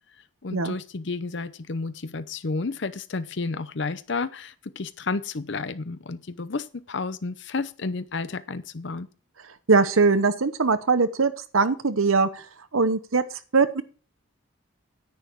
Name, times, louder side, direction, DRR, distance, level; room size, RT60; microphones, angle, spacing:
voice 1, 0.4-9.1, left 3 dB, 60° left, 0.7 m, -31 dB
voice 2, 9.7-12.4 12.7-13.2 13.5-13.8, right 4 dB, 85° right, 0.9 m, -21 dB
10.5 x 9.3 x 4.6 m
head